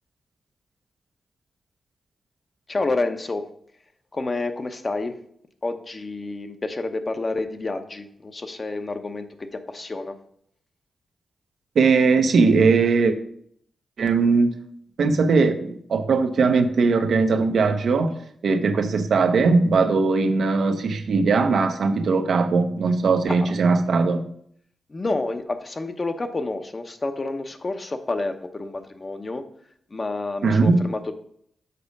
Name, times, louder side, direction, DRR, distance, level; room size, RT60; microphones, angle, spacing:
voice 1, 2.7-3.4 4.1-5.1 5.6-9.3 9.7-10.1 23.3-23.5 24.9-29.4 29.9-31.1, left 2 dB, 35° left, 7 dB, 0.8 m, -29 dB
voice 2, 11.7-13.2 14.0-14.6 15.0-18.2 18.4-24.3 30.4-30.8, right 4 dB, 75° right, 6 dB, 0.8 m, -19 dB
6.8 x 4.9 x 5.3 m, 0.65 s
cardioid pair, 85°, 0 cm